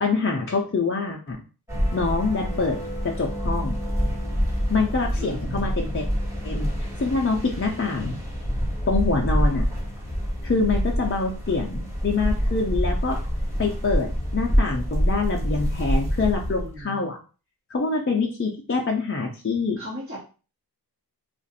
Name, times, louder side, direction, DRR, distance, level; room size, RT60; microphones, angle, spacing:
voice 1, 0.0-1.4 1.9-2.8 3.0-3.7 4.7-6.1 6.4-8.2 8.9-9.7 10.4-13.2 13.6-17.2 17.7-19.8, left 4 dB, 35° left, 0 dB, 0.6 m, -25 dB
sound 1, 1.7-16.8, equal, 5° right, 1.3 m, -26 dB
voice 2, 5.2-5.7 16.6-17.0 19.8-20.2, equal, 30° right, -6 dB, 1.0 m, -36 dB
2.5 x 2.5 x 4.0 m, 0.35 s
wide cardioid pair, 65°, 40 cm